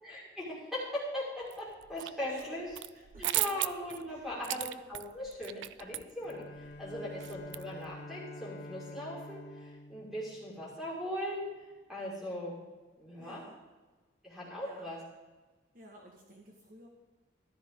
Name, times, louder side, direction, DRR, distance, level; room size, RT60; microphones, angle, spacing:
voice 1, 0.0-2.7 3.1-11.5 11.9-12.6 13.0-13.4 14.2-15.0, left 1 dB, ahead, -7 dB, 5.3 m, -39 dB
sound 1, 1.5-2.1 2.4-7.9, right 14 dB, 85° right, 0.4 m, -36 dB
voice 2, 2.9-3.4 4.1-4.5 13.2-13.6 14.6-14.9 15.7-16.9, right 1 dB, 50° right, 0 dB, 1.7 m, -54 dB
Bowed string instrument, 6.2-11.3, left 2 dB, 60° left, 0.8 m, -48 dB
14.5 x 12.5 x 3.9 m, 1.3 s
head